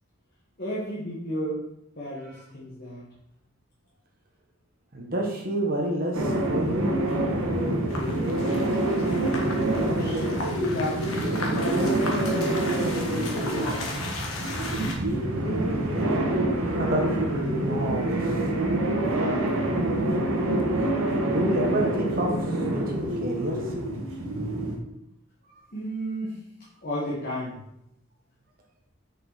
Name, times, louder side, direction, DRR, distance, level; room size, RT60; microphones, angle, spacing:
voice 1, 0.6-1.6 2.0-3.0 9.5-12.5 13.1-14.1 19.0-19.5 23.4-23.5 25.7-26.4 26.8-27.6, equal, 45° left, -6 dB, 1.8 m, -33 dB
voice 2, 4.9-7.4 16.6-17.1 17.6-18.4 21.3-22.3 22.7-23.7, right 1 dB, 45° right, 1 dB, 1.4 m, -29 dB
sound 1, 6.1-24.8, right 1 dB, 85° right, 1.5 m, -26 dB
sound 2, 7.9-14.9, left 2 dB, 85° left, 1.6 m, -36 dB
6.6 x 6.0 x 4.2 m, 0.78 s
head